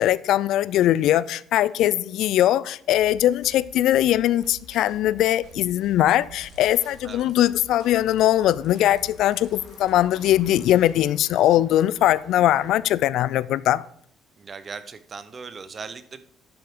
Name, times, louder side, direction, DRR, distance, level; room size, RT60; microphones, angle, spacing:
voice 1, 0.0-13.8, left 13 dB, 75° left, 0.3 m, -21 dB
sound 1, 2.9-10.9, right 2 dB, 80° right, 1.7 m, -49 dB
sound 2, 6.3-12.7, left 3 dB, 50° left, 2.2 m, -53 dB
voice 2, 14.4-16.2, right 5 dB, 30° right, 0.7 m, -38 dB
11.5 x 7.7 x 3.6 m
cardioid pair, 125°, 0 cm